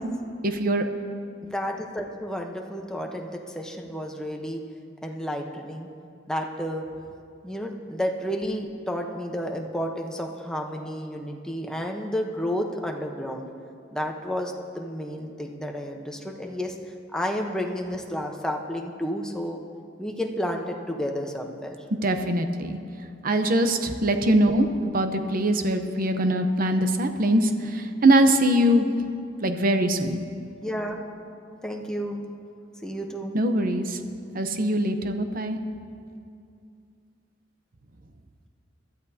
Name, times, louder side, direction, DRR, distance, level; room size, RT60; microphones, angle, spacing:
voice 1, 0.4-0.8 22.0-22.8 23.2-24.7 24.9-28.9 29.4-30.2 33.3-34.0 34.3-35.6, right 1 dB, 50° right, 7 dB, 0.8 m, -22 dB
voice 2, 1.4-4.6 5.0-5.9 6.3-6.9 7.4-13.5 13.9-16.7 17.1-19.6 20.0-21.8 30.6-31.0 31.6-32.2 32.8-33.3, equal, 5° left, 1 dB, 1.0 m, -31 dB
22.0 x 13.0 x 2.8 m, 2.4 s
head